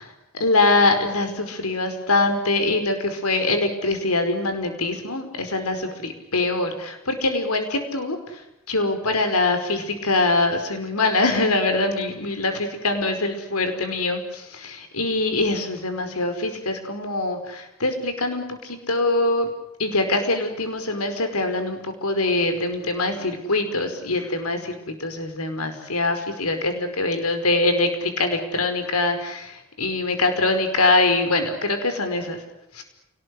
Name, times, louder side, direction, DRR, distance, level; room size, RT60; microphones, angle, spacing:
voice 1, 0.4-8.4 8.7-19.5 19.8-32.4 32.7-32.8, left 2 dB, 90° left, 7 dB, 5.2 m, -23 dB
29.5 x 19.5 x 9.9 m, 0.88 s
head